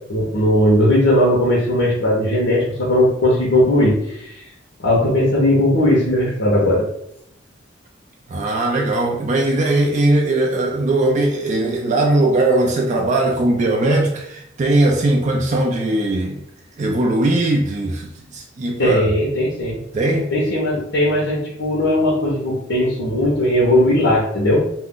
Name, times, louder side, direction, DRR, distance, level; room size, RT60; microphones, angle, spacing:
voice 1, 0.1-4.4 4.8-6.8 18.8-19.8 20.3-24.7, left 1 dB, 65° left, 0.8 m, -17 dB
voice 2, 8.3-16.4 16.8-19.0 19.9-20.3, right 2 dB, 40° right, 0.4 m, -19 dB
2.4 x 2.1 x 3.7 m
head